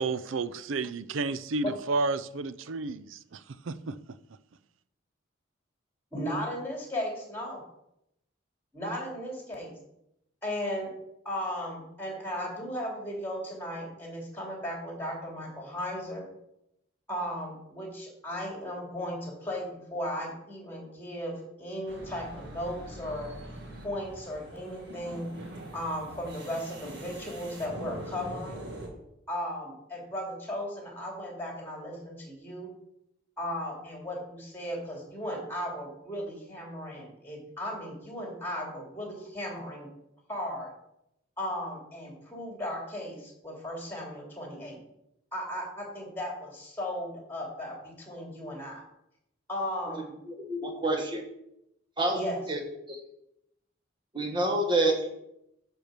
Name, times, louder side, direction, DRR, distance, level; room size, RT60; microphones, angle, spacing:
voice 1, 0.0-4.0, right 3 dB, 85° right, 15 dB, 0.5 m, -31 dB
voice 2, 6.1-7.6 8.7-9.7 10.4-10.9 11.2-16.2 17.1-23.3 23.8-25.3 25.7-28.7 29.3-32.7 33.4-39.9 40.3-40.7 41.4-44.8 45.3-48.8 49.5-50.1 52.1-52.4, equal, 10° left, -1 dB, 2.8 m, -36 dB
sound 1, 21.9-28.9, right 1 dB, 55° right, 1.9 m, -43 dB
voice 3, 50.0-51.2 52.0-52.2 52.5-52.6 52.9-53.0 54.1-55.1, right 2 dB, 25° right, 3 dB, 1.4 m, -28 dB
10.0 x 4.5 x 6.7 m, 0.82 s
head